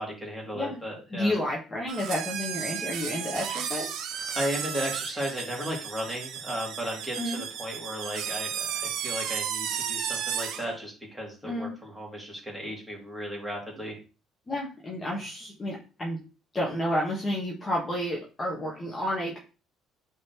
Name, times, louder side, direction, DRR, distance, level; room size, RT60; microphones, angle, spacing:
voice 1, 0.0-1.3 4.3-14.0, equal, 5° right, -3 dB, 2.4 m, -35 dB
voice 2, 1.1-3.9 7.2-7.4 11.4-11.7 14.5-16.2 16.5-19.4, left 1 dB, 20° left, -3 dB, 1.2 m, -30 dB
sound 1, 1.9-10.7, right 8 dB, 70° right, 0.8 m, -34 dB
8.5 x 3.8 x 2.9 m, 0.34 s
cardioid pair, 145°, 0 cm